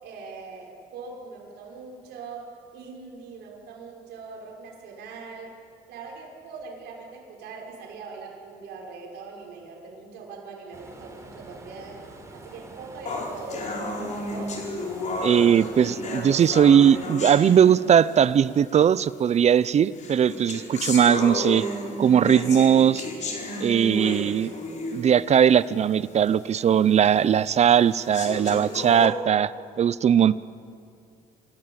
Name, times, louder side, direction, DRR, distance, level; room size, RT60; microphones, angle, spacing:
voice 1, 0.0-5.6 5.9-14.6, right 4 dB, 80° right, -1 dB, 6.0 m, -41 dB
sound 1, 10.7-17.1, right 2 dB, 15° right, 4.1 m, -45 dB
sound 2, 13.1-18.2 19.1-19.2 19.9-25.2 25.6-25.7 26.3-26.4 27.0-27.1 27.9-29.1, left 2 dB, 45° left, 4.8 m, -32 dB
voice 2, 15.2-21.7 22.0-23.0 23.6-24.5 24.9-29.5 29.8-30.4, right 8 dB, 40° right, 18 dB, 0.7 m, -19 dB
27.5 x 17.0 x 8.9 m, 2.4 s
cardioid pair, 110°, 17 cm